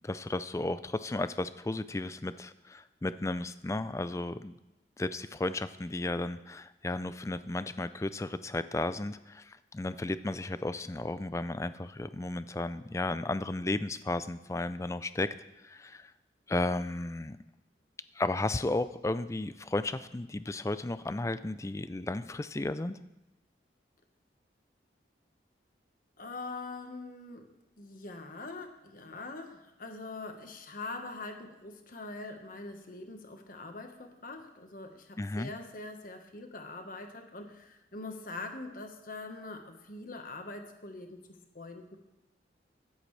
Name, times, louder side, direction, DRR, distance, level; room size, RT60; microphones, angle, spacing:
voice 1, 0.0-4.5 5.0-15.3 15.6-16.1 16.5-17.4 18.1-23.0 35.2-35.5, left 2 dB, 15° left, 13 dB, 0.4 m, -34 dB
voice 2, 26.2-27.5 27.8-42.0, left 3 dB, 50° left, 4 dB, 1.3 m, -43 dB
23.0 x 8.0 x 3.3 m, 0.96 s
head